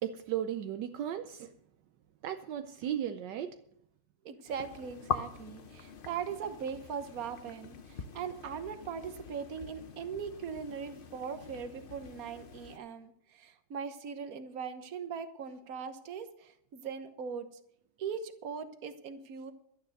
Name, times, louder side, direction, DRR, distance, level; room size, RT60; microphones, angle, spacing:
voice 1, 0.0-1.5 2.2-3.6, right 10 dB, 75° right, 8 dB, 1.3 m, -35 dB
voice 2, 4.2-17.5 18.0-19.5, right 6 dB, 55° right, 9 dB, 1.5 m, -40 dB
sound 1, 4.5-12.8, left 6 dB, 45° left, 0.7 m, -43 dB
12.0 x 10.0 x 6.5 m, 0.71 s
omnidirectional pair, 2.0 m